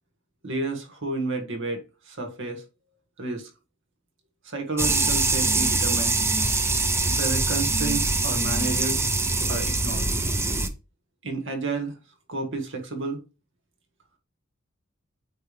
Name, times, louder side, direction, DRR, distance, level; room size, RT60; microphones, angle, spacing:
voice 1, 0.4-2.6 3.2-3.5 4.4-6.2 7.2-9.0 9.5-10.1 11.2-11.9 12.3-13.2, right 2 dB, 65° right, 1.7 m, -31 dB
sound 1, 4.8-10.7, right 3 dB, 10° right, 0.6 m, -23 dB
9.1 x 3.4 x 3.3 m
head